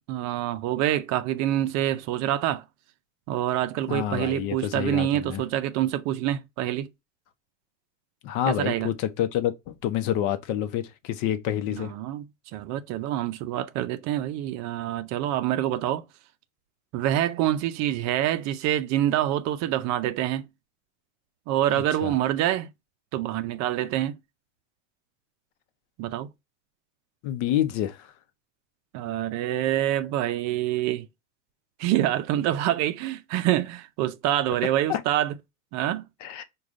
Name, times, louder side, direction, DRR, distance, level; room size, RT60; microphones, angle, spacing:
voice 1, 0.0-2.6 3.3-6.9 8.5-8.9 11.7-16.0 16.9-20.5 21.5-22.7 23.1-24.2 26.0-26.3 28.9-31.1 31.8-35.4 35.7-36.0, right 12 dB, 45° right, 0.5 m, -26 dB
voice 2, 3.9-5.4 8.2-11.9 21.7-22.1 27.2-28.1 34.9-35.0 36.2-36.4, left 11 dB, 50° left, 0.8 m, -28 dB
4.8 x 2.4 x 3.6 m
hypercardioid pair, 105°, 39 cm